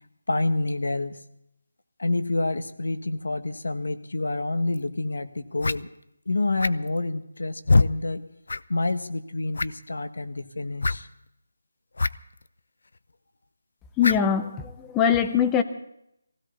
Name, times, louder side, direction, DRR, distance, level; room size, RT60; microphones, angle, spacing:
voice 1, 0.3-1.2 2.0-5.9 6.3-8.2 8.7-11.1, left 2 dB, 75° left, 9 dB, 1.5 m, -28 dB
sound 1, 4.7-4.8 5.6-5.8 6.6-7.0 7.7-7.9 8.5-8.6 8.9-9.0 9.5-9.9 10.8-11.0 12.0-12.1 12.4-12.5 14.0-14.3, left 3 dB, 55° left, 0.5 m, -22 dB
voice 2, 14.0-15.6, left 8 dB, 5° left, 8 dB, 0.5 m, -22 dB
20.5 x 16.5 x 4.1 m, 0.78 s
figure-of-eight pair, 180°, 0 cm